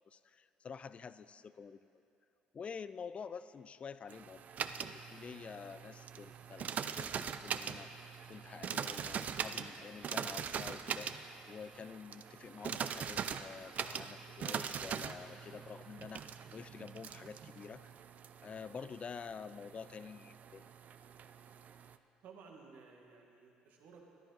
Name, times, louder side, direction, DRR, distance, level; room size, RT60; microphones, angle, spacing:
voice 1, 0.1-1.9 2.5-11.1 11.5-17.9 18.4-20.7, left 6 dB, 40° left, 14 dB, 0.3 m, -48 dB
sound 1, 4.1-22.0, right 7 dB, 55° right, 0.4 m, -42 dB
voice 2, 22.2-24.1, right 5 dB, 70° right, 1 dB, 1.6 m, -56 dB
14.0 x 10.5 x 4.0 m, 2.8 s
supercardioid pair, 70°, 3 cm